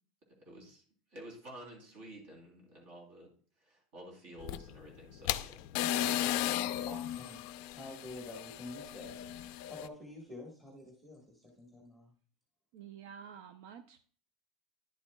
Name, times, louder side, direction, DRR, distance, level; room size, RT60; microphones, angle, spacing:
voice 1, 0.4-0.8 1.1-3.3 3.6-6.2, right 1 dB, 55° right, 3.3 m, -51 dB
sound 1, 4.4-9.9, left 12 dB, 60° left, 0.4 m, -35 dB
voice 2, 6.9-7.4 7.7-9.2 9.7-12.1, left 1 dB, 5° right, 1.4 m, -48 dB
voice 3, 12.7-14.0, right 8 dB, 70° right, 0.5 m, -50 dB
10.5 x 7.2 x 2.3 m
supercardioid pair, 160°, 0 cm